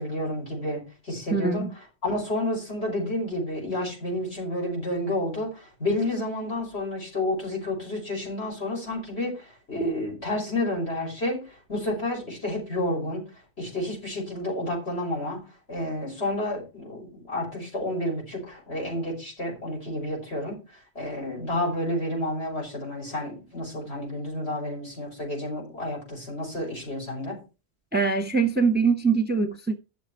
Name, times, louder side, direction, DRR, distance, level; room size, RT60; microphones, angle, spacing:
voice 1, 0.0-13.2 13.6-15.4 15.7-20.6 20.9-27.4, left 1 dB, 70° left, 6.0 m, -30 dB
voice 2, 1.3-1.7 27.9-29.7, right 5 dB, 10° right, 0.8 m, -23 dB
11.5 x 7.0 x 4.4 m
omnidirectional pair, 1.1 m